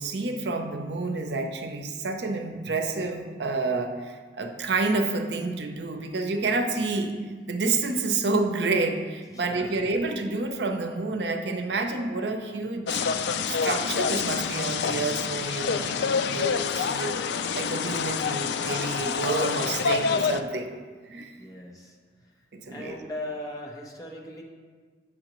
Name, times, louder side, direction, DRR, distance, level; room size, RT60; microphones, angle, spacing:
voice 1, 0.0-7.1 7.5-13.0 13.5-17.1 17.5-20.7 21.1-21.3 22.5-23.0, right 3 dB, 80° right, 6 dB, 0.6 m, -29 dB
voice 2, 9.3-9.7 21.4-22.0 22.7-24.4, left 1 dB, 20° left, -1 dB, 0.9 m, -38 dB
sound 1, 12.9-20.4, left 6 dB, 80° left, 0.3 m, -27 dB
7.7 x 6.3 x 3.0 m, 1.5 s
head